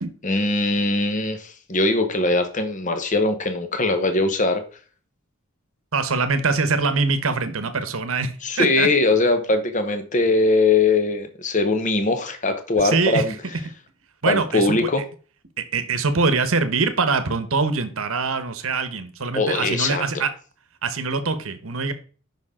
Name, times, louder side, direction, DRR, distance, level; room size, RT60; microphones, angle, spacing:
voice 1, 0.2-4.6 8.4-13.3 14.3-15.0 19.3-20.2, left 3 dB, 35° left, 8 dB, 1.0 m, -21 dB
voice 2, 5.9-8.9 12.8-13.3 14.2-14.9 15.7-20.3 20.8-21.9, right 4 dB, 65° right, 10 dB, 1.0 m, -23 dB
8.9 x 5.8 x 3.7 m, 0.40 s
head